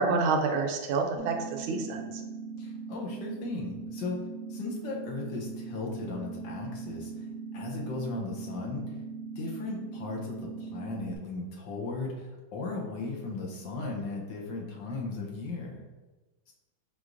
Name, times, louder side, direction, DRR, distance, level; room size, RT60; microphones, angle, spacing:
voice 1, 0.0-2.0, right 4 dB, 90° right, 4 dB, 1.5 m, -28 dB
sound 1, 1.2-11.2, right 5 dB, 75° right, 0.7 m, -40 dB
voice 2, 2.6-4.2 4.5-7.1 7.5-8.8 9.4-15.8, left 3 dB, 70° left, -1 dB, 1.4 m, -36 dB
4.7 x 3.8 x 2.5 m, 1.2 s
omnidirectional pair, 2.2 m